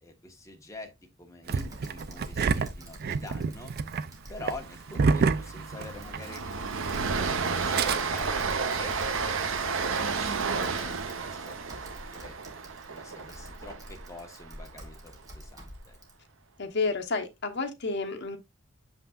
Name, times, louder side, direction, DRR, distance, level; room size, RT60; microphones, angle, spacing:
voice 1, 0.0-3.7 4.3-6.4 7.2-9.0 10.0-12.4 12.9-16.0, left 2 dB, 15° left, 1.3 m, -46 dB
Typing, 1.5-16.1, equal, 20° right, 1.8 m, -47 dB
Engine starting, 1.5-6.4 6.6-6.7 7.5-8.0, right 5 dB, 50° right, 0.4 m, -28 dB
Train, 3.5-3.8 4.1-4.2 4.6-14.8, right 5 dB, 80° right, 0.8 m, -32 dB
voice 2, 16.6-18.4, left 3 dB, 60° left, 1.1 m, -30 dB
7.1 x 5.6 x 2.4 m
head